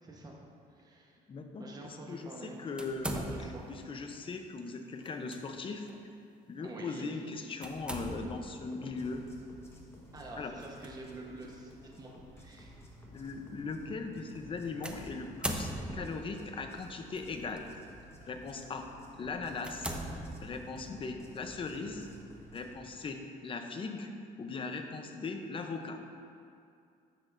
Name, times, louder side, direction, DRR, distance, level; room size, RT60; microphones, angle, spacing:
voice 1, 0.0-0.4 0.7-1.2 1.6-2.6 3.2-3.7 6.6-7.1 10.1-12.7 19.8-20.0, right 2 dB, 20° right, -2 dB, 1.1 m, -47 dB
voice 2, 1.3-5.9 6.5-9.2 10.4-10.5 13.1-17.7 18.2-18.9 19.2-19.9 20.4-22.1 22.5-24.1 24.4-26.0, left 4 dB, 30° left, 5 dB, 0.7 m, -39 dB
sound 1, 2.8-3.8 5.0-5.4 5.9-6.0 7.6-8.5 10.6-10.9 11.7-11.8 14.8-16.2 17.1-17.6 18.2-18.4 18.9-19.0 19.6-20.8, right 1 dB, 5° right, 0.7 m, -39 dB
sound 2, 8.6-22.7, equal, 15° left, 1.3 m, -53 dB
10.0 x 8.1 x 2.6 m, 2.4 s
cardioid pair, 110°, 17 cm